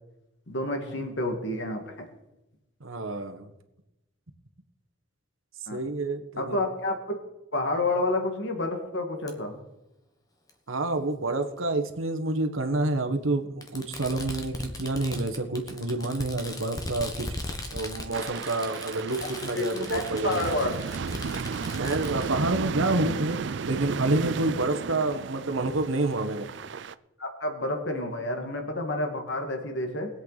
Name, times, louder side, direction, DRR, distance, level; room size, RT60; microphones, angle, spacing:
voice 1, 0.5-2.1 5.7-5.8 6.4-7.2 7.5-9.5 19.5-20.7 27.2-30.1, left 2 dB, 60° left, 4 dB, 1.9 m, -29 dB
voice 2, 2.8-3.5 5.7-6.6 10.7-17.3 17.7-20.5 21.8-23.4 23.6-26.5, right 2 dB, 80° right, 6 dB, 1.4 m, -28 dB
Fireworks, 9.3-9.4 10.5-10.6 11.9-12.0 13.6-22.3, left 2 dB, 15° left, 1.1 m, -38 dB
sound 1, 18.1-26.9, right 5 dB, 60° right, 0.4 m, -34 dB
21.0 x 8.2 x 4.1 m, 0.96 s
head